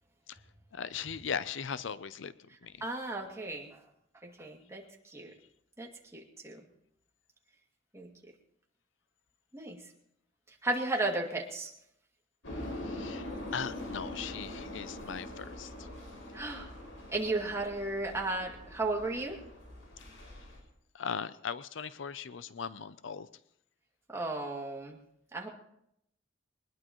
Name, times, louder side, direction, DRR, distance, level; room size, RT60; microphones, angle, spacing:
voice 1, 0.7-2.3 2.6-2.7 12.7-15.9 20.9-23.3, left 6 dB, 70° left, 15 dB, 0.5 m, -39 dB
voice 2, 2.8-3.8 4.2-5.3 5.8-6.6 7.9-8.1 9.5-9.8 10.6-11.7 16.3-16.7 17.1-19.4 24.1-25.0 25.3-25.5, right 2 dB, 15° right, -1 dB, 2.4 m, -34 dB
sound 1, 12.4-20.6, left 1 dB, 85° left, 5.6 m, -43 dB
22.0 x 20.0 x 3.1 m, 0.76 s
head